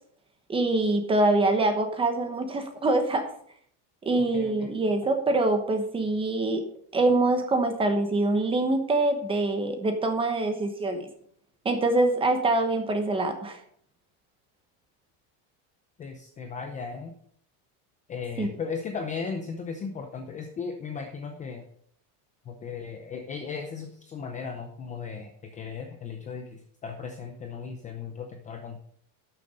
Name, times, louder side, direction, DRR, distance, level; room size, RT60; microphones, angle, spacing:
voice 1, 0.5-3.3 4.0-6.7 6.9-11.1 11.6-13.6 18.4-18.5, right 2 dB, 10° right, 6 dB, 1.0 m, -24 dB
voice 2, 4.1-4.7 5.0-5.1 16.0-17.2 18.1-21.6 22.5-28.8, left 5 dB, 20° left, 4 dB, 0.6 m, -36 dB
12.0 x 6.7 x 5.2 m, 0.63 s
cardioid pair, 180°, 42 cm